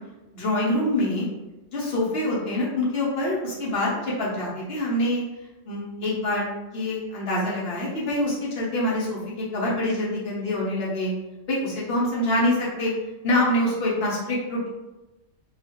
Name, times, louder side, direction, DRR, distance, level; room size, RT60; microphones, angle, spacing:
voice 1, 0.3-1.3 1.7-5.2 5.7-6.5 6.7-11.1 11.5-12.9 13.2-14.7, left 1 dB, 55° left, -5 dB, 0.9 m, -25 dB
2.8 x 2.4 x 2.8 m, 1.0 s
omnidirectional pair, 1.3 m